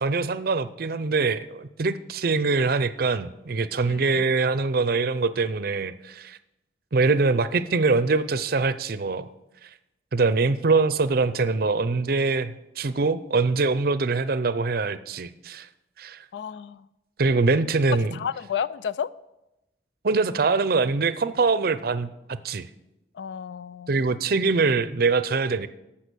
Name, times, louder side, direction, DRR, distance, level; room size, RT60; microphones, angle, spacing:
voice 1, 0.0-6.4 6.9-9.3 9.6-9.7 10.1-15.7 16.0-16.2 17.2-18.2 20.0-22.1 22.4-22.7 23.9-25.7, right 4 dB, 55° right, 14 dB, 0.6 m, -23 dB
voice 2, 3.8-4.2 16.3-16.9 18.1-19.1 23.1-24.1, left 8 dB, 80° left, 17 dB, 0.3 m, -32 dB
14.5 x 5.8 x 6.3 m, 0.93 s
head